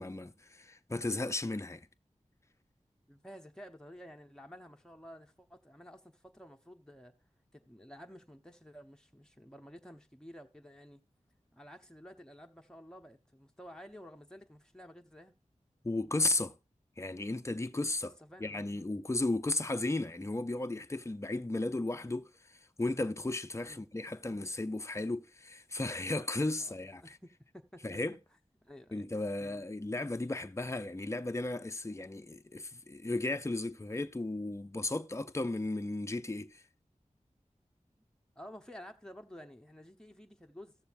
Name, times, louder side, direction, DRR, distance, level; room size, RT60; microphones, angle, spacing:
voice 1, 0.0-1.9 15.8-16.5 17.0-18.1 18.4-27.0 27.8-28.2 28.9-36.6, left 2 dB, 20° left, 0.6 m, -35 dB
voice 2, 3.1-7.1 7.5-11.0 11.5-15.3 18.0-18.7 23.7-23.9 26.7-27.8 28.6-29.1 29.4-29.6 38.0-38.1 38.4-40.8, equal, 5° left, 1.1 m, -52 dB
14.5 x 6.8 x 2.6 m
wide cardioid pair, 45°, 13 cm